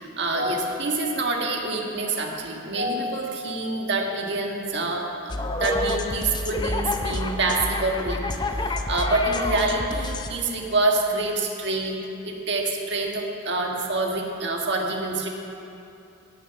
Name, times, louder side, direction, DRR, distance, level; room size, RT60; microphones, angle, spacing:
voice 1, 0.0-8.2 8.5-12.0 12.2-15.3, right 2 dB, 60° right, 0 dB, 1.6 m, -26 dB
sound 1, 5.3-10.3, left 2 dB, 20° left, 0.5 m, -28 dB
17.0 x 6.6 x 5.8 m, 2.7 s
head